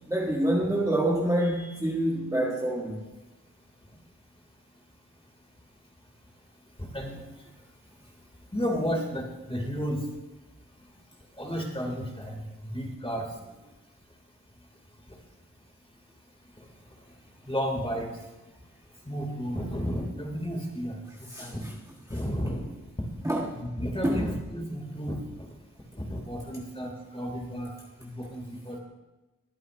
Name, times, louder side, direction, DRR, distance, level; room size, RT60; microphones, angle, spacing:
voice 1, 0.1-3.0 21.3-21.5 23.2-23.5 24.0-24.2, right 1 dB, 10° right, -3 dB, 1.3 m, -26 dB
voice 2, 6.8-7.2 8.5-10.0 11.4-13.5 17.5-18.1 19.1-21.7 22.1-22.6 23.5-25.5 26.0-27.7 28.0-28.8, equal, 15° left, 1 dB, 2.4 m, -32 dB
20.0 x 9.4 x 2.5 m, 1.1 s
wide cardioid pair, 60°, 32 cm